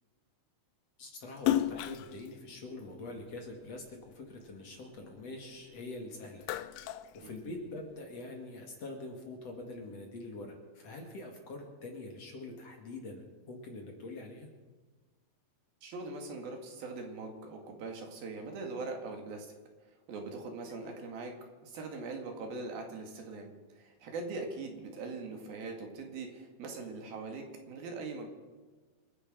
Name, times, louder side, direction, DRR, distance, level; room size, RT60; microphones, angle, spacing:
voice 1, 1.0-6.5 6.8-14.5, left 2 dB, 50° left, 2 dB, 2.8 m, -44 dB
Splash splatter, 1.4-3.9 4.4-5.8 6.2-7.9, left 12 dB, 80° left, 2.4 m, -34 dB
voice 2, 15.8-19.5 20.1-21.4 21.6-28.3, right 3 dB, 75° right, 3 dB, 3.9 m, -41 dB
27.5 x 10.0 x 5.1 m, 1.4 s
omnidirectional pair, 4.4 m